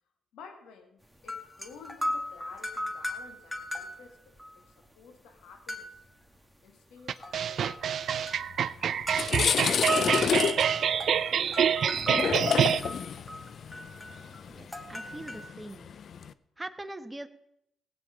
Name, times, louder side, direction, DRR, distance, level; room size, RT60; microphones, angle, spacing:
voice 1, 0.3-4.3 4.7-6.0 6.6-8.5 8.8-10.9, left 5 dB, 85° left, 5 dB, 1.9 m, -53 dB
sound 1, 1.2-4.6 4.8-4.9 5.7-6.1 7.2-8.6 9.0-9.3 9.9-15.5, left 1 dB, 5° left, 1.9 m, -37 dB
sound 2, 7.1-12.8, right 8 dB, 65° right, 0.5 m, -27 dB
sound 3, 8.5-8.6 9.0-16.3, left 7 dB, 65° left, 0.5 m, -30 dB
voice 2, 14.5-15.9 16.6-17.3, right 1 dB, 20° right, 8 dB, 1.2 m, -42 dB
17.0 x 8.5 x 5.0 m, 0.77 s
cardioid pair, 70°, 0 cm